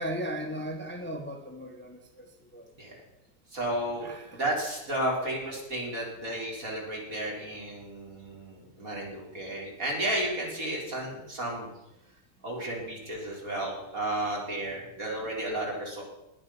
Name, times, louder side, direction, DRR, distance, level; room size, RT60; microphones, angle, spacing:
voice 1, 0.0-2.3 2.5-2.7 4.0-4.4 6.0-6.1, equal, 5° left, 3 dB, 1.4 m, -36 dB
voice 2, 3.5-11.7 12.4-16.0, right 1 dB, 55° right, -2 dB, 4.8 m, -33 dB
20.5 x 8.8 x 5.8 m, 0.90 s
omnidirectional pair, 1.7 m